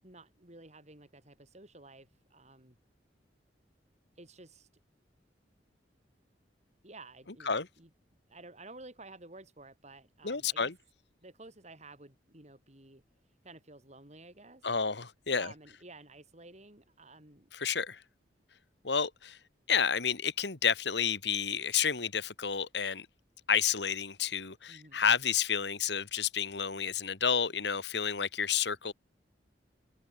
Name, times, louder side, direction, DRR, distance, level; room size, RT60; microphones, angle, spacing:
voice 1, 0.0-2.8 4.2-4.7 6.8-7.9 8.3-10.7 11.2-13.0 13.4-14.7 15.4-17.5 24.7-25.0, right 2 dB, 40° right, 7.1 m, -52 dB
voice 2, 10.2-10.8 14.6-15.5 17.5-18.0 18.8-19.4 19.7-23.1 23.5-28.9, left 7 dB, 70° left, 1.8 m, -30 dB
open air
head